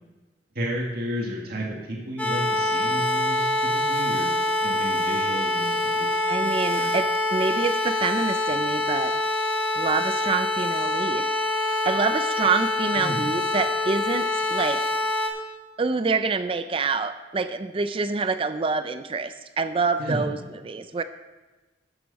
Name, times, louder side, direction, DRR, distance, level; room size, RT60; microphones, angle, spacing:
voice 1, 0.6-3.5 3.9-4.3 4.6-6.9 13.0-13.3 20.0-20.3, equal, 60° right, -2 dB, 1.9 m, -32 dB
sound 1, 2.2-15.3, left 1 dB, 10° left, 1.6 m, -25 dB
voice 2, 6.3-7.1 7.3-9.1 9.8-11.3 11.6-14.8 15.8-20.4 20.6-21.0, right 4 dB, 30° right, 11 dB, 0.4 m, -26 dB
13.5 x 7.8 x 4.1 m, 1.2 s
head